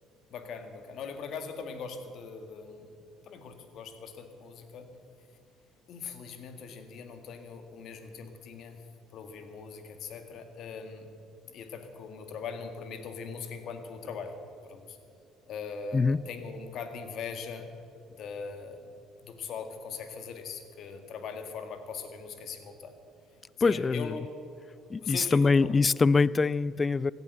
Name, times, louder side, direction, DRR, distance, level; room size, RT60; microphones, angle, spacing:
voice 1, 0.3-2.9 3.2-4.9 5.9-8.8 9.1-11.1 11.5-14.3 14.6-15.0 15.5-17.7 18.1-18.8 19.2-22.9 23.6-24.3 25.0-25.8, left 5 dB, 60° left, 1.9 m, -40 dB
voice 2, 23.6-24.0 24.9-27.1, left 4 dB, 30° left, 0.4 m, -24 dB
17.0 x 12.0 x 6.7 m
hypercardioid pair, 60°, 0 cm